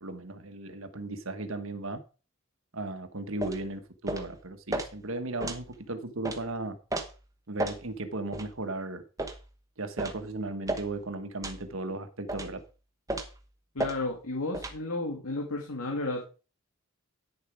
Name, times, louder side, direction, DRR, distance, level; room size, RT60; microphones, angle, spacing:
voice 1, 0.0-2.0 2.7-6.8 7.5-9.0 9.8-12.6, right 2 dB, 65° right, 1.3 m, -36 dB
sound 1, 3.4-3.6 4.1-4.3 4.7-4.9 5.4-5.6 6.2-6.4 6.9-7.1 7.6-7.8 8.3-8.5 9.2-9.4 10.0-10.2 10.7-10.9 11.4-11.6 12.3-12.5 13.1-13.4 13.8-14.0 14.5-14.8, right 1 dB, 15° right, 1.0 m, -33 dB
voice 2, 13.7-16.2, left 2 dB, 85° left, 2.0 m, -32 dB
10.0 x 7.0 x 4.8 m
head